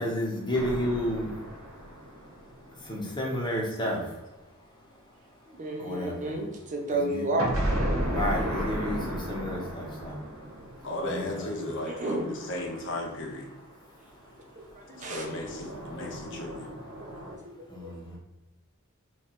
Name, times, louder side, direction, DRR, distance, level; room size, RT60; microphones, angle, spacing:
voice 1, 0.0-6.5 6.9-7.3 8.0-11.8 13.5-15.2 15.7-17.4 17.7-18.2, equal, 20° left, -2 dB, 1.1 m, -35 dB
sound 1, 0.5-3.3 7.4-13.6 14.9-17.3, equal, 70° right, 1.1 m, -35 dB
voice 2, 5.5-7.6 10.9-11.3 11.8-12.3 14.6-15.6 17.0-17.9, right 2 dB, 35° right, 1 dB, 0.6 m, -33 dB
voice 3, 10.8-13.5 15.1-16.7, left 1 dB, 60° left, 1 dB, 0.8 m, -35 dB
3.2 x 3.1 x 4.2 m, 1.0 s
head